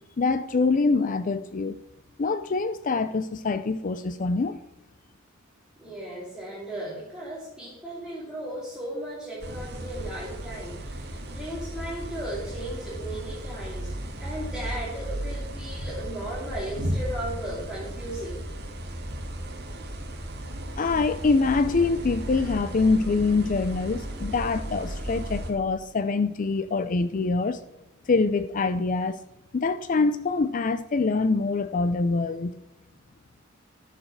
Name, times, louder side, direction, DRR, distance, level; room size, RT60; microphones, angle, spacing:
voice 1, 0.2-1.8 2.2-4.6 20.8-27.6 28.1-29.2 29.5-32.6, left 3 dB, 40° left, 0.4 m, -25 dB
voice 2, 5.8-18.4, right 1 dB, 5° right, 2.5 m, -36 dB
sound 1, 9.4-25.5, right 1 dB, 50° right, 2.1 m, -35 dB
11.0 x 6.7 x 5.9 m
head